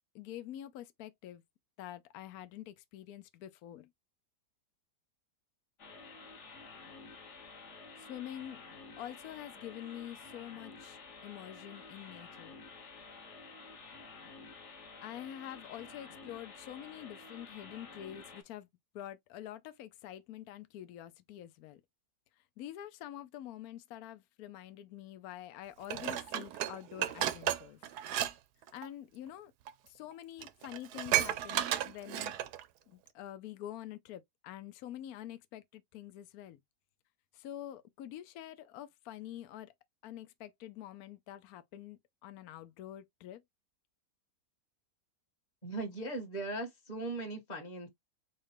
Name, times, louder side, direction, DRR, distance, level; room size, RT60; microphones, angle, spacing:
voice 1, 0.1-1.4 1.8-3.9 8.0-8.6 9.0-12.6 15.0-18.7 18.9-21.8 22.3-27.8 28.7-29.5 29.9-32.4 32.9-36.6 37.3-39.7 40.0-43.4, left 12 dB, 70° left, 1.0 m, -46 dB
sound 1, 5.8-18.4, left 4 dB, 45° left, 1.5 m, -51 dB
Dishes pots and pans, 25.9-28.3 28.6-28.9 29.7-29.8 30.1-30.2 30.4-32.6 33.1-33.2, right 11 dB, 75° right, 1.2 m, -33 dB
voice 2, 45.6-47.9, right 2 dB, 25° left, 1.7 m, -39 dB
4.4 x 2.4 x 4.7 m
omnidirectional pair, 1.8 m